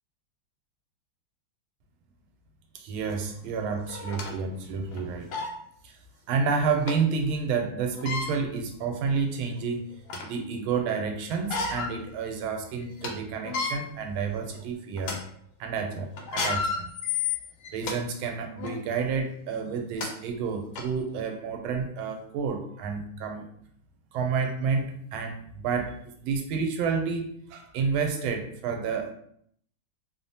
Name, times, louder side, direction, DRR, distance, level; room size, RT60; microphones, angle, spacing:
voice 1, 2.7-5.3 5.8-5.9 6.3-9.8 10.2-15.2 15.6-16.9 17.7-23.5 24.1-26.0 26.2-29.1, right 5 dB, 90° right, 4 dB, 1.4 m, -30 dB
sound 1, 3.1-3.2 3.9-4.3 4.9-5.0 5.3-5.5 6.9-7.0 7.9-8.3 9.1-9.2 9.7-10.4 11.3-11.9 12.4-12.5 12.8-13.1 13.4-13.7 14.4-14.6 15.0-15.2 16.2-18.0 18.6-18.8 19.6-19.7 20.0-20.1 20.8-20.9, left 4 dB, 90° left, 1.4 m, -31 dB
3.4 x 2.0 x 2.6 m, 0.66 s
omnidirectional pair, 2.2 m